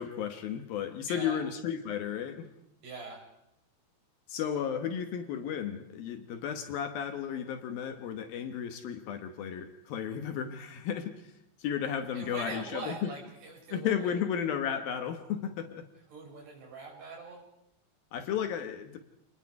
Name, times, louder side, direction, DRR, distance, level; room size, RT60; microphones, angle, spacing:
voice 1, 0.0-2.5 4.3-11.2 11.6-13.1 13.7-15.8 18.1-19.0, left 8 dB, 65° left, 7 dB, 2.7 m, -34 dB
voice 2, 1.1-1.4 2.8-3.2 12.1-14.2 16.1-17.4, right 3 dB, 70° right, 0 dB, 7.6 m, -42 dB
28.0 x 20.5 x 4.8 m, 0.82 s
omnidirectional pair, 4.9 m